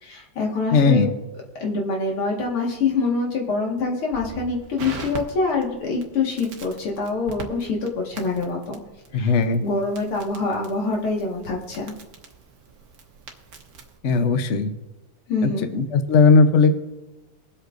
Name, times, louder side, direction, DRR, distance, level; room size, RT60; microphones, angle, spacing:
voice 1, 0.0-1.1 1.6-8.8 9.2-9.3 9.6-11.8 15.3-15.7, left 3 dB, 85° left, -1 dB, 2.7 m, -25 dB
voice 2, 0.7-1.1 9.1-9.6 14.0-14.7 15.4-16.7, left 4 dB, 55° left, 8 dB, 0.8 m, -17 dB
Crackle, 4.1-14.0, right 5 dB, 50° right, 1.4 m, -42 dB
23.0 x 8.0 x 2.6 m, 1.1 s
omnidirectional pair, 2.3 m